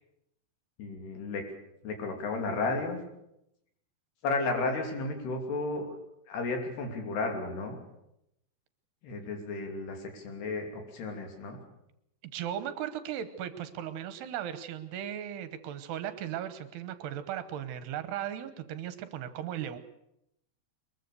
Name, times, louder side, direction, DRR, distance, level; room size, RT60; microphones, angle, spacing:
voice 1, 0.8-1.5 1.8-3.0 4.2-5.9 6.3-7.8 9.0-11.6, left 3 dB, 70° left, 4 dB, 4.9 m, -33 dB
voice 2, 12.2-19.8, right 10 dB, 75° right, 11 dB, 3.0 m, -37 dB
22.5 x 22.0 x 6.8 m, 0.80 s
omnidirectional pair, 4.9 m